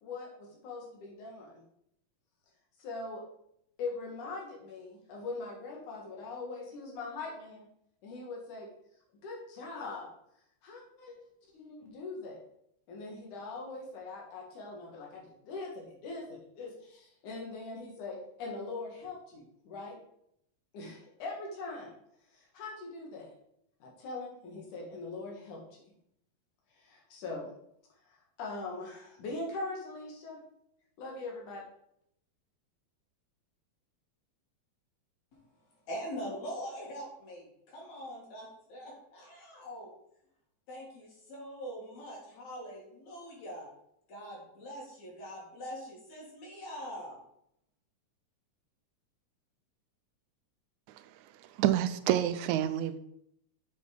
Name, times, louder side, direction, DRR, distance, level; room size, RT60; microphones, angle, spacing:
voice 1, 0.0-1.6 2.8-3.2 3.8-7.6 8.0-8.7 9.2-10.1 10.6-12.4 12.9-20.0 20.7-21.9 22.3-23.3 23.8-25.6 26.7-27.5 28.1-30.4 31.0-31.6, left 3 dB, 85° left, -1 dB, 3.3 m, -41 dB
voice 2, 35.9-39.9 40.7-43.7 44.1-47.2, equal, 65° left, -2 dB, 3.4 m, -43 dB
voice 3, 51.0-53.0, right 12 dB, 80° right, 12 dB, 1.9 m, -29 dB
7.6 x 5.3 x 5.1 m, 0.75 s
omnidirectional pair, 3.4 m